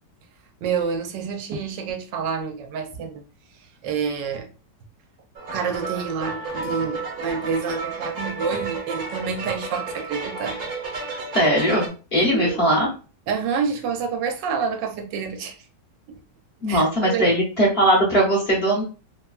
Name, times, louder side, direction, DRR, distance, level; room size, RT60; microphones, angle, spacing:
voice 1, 0.6-3.2 3.8-4.5 5.5-10.6 12.2-12.6 13.3-15.6 16.1-16.2 16.7-17.3, right 6 dB, 85° right, 1.3 m, -28 dB
sound 1, 5.4-11.9, right 3 dB, 60° right, 1.2 m, -32 dB
voice 2, 11.3-12.9 16.6-18.8, right 1 dB, 40° left, 1.4 m, -20 dB
3.3 x 2.2 x 2.3 m
omnidirectional pair, 1.9 m